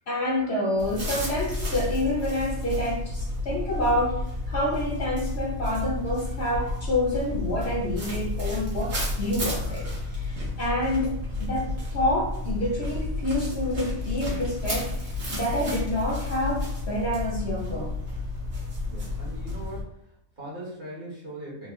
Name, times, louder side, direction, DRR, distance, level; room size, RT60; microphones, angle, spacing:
voice 1, 0.1-17.9, left 1 dB, 60° left, -2 dB, 0.8 m, -28 dB
sound 1, 0.8-19.8, left 2 dB, 65° right, 1.6 m, -31 dB
voice 2, 18.8-21.7, right 1 dB, 40° right, -5 dB, 1.4 m, -40 dB
4.0 x 2.2 x 3.6 m, 0.76 s
omnidirectional pair, 1.4 m